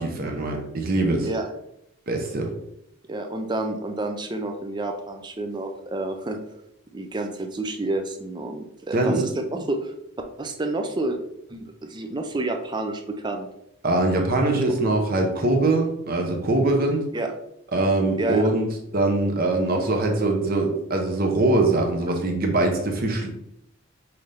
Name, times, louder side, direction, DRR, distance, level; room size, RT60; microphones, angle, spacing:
voice 1, 0.0-1.3 2.1-2.5 8.9-9.2 13.8-17.0 17.7-18.7 18.9-23.3, right 2 dB, 45° right, 2 dB, 0.8 m, -22 dB
voice 2, 3.1-6.4 6.9-9.9 10.4-11.2 11.5-13.5 17.1-17.3 18.2-18.4, right 2 dB, 20° right, 5 dB, 0.4 m, -29 dB
5.7 x 2.7 x 3.3 m, 0.77 s
head